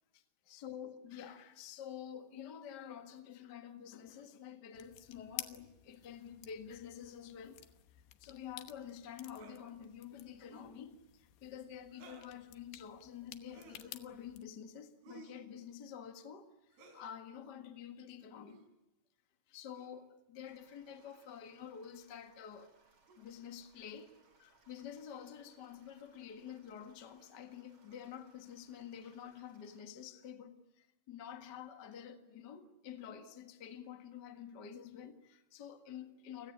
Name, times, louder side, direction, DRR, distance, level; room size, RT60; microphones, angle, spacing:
voice 1, 0.1-7.6 7.9-18.6 19.5-22.7 23.2-36.5, left 8 dB, 55° left, 1.1 m, -49 dB
sound 1, 4.7-14.4, left 13 dB, 80° left, 3.2 m, -53 dB
sound 2, 9.3-9.6 10.4-10.8 11.9-12.4 13.5-13.9 15.0-15.5 16.7-17.1 18.4-18.7 19.7-20.0 20.9-21.4 23.1-23.2 24.3-24.4 25.1-25.3 26.1-26.3 27.8-28.2, right 3 dB, 80° right, 5.5 m, -58 dB
sound 3, 20.4-29.8, right 3 dB, 35° right, 3.3 m, -71 dB
30.0 x 17.5 x 10.0 m
omnidirectional pair, 4.8 m